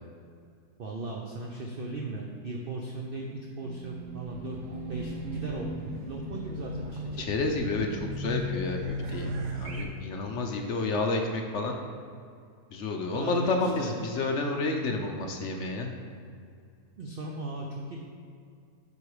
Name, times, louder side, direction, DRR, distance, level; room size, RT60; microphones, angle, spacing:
voice 1, 0.8-4.6 4.9-5.7 5.9-7.2 13.1-13.9 17.0-18.0, right 2 dB, 55° right, 0 dB, 0.6 m, -37 dB
Race car auto racing / Alarm, 3.6-9.8, equal, 90° right, 1.4 m, -36 dB
voice 2, 7.2-11.8 12.7-15.9, left 3 dB, 60° left, 3 dB, 0.9 m, -30 dB
8.1 x 5.6 x 4.9 m, 2.3 s
omnidirectional pair, 1.7 m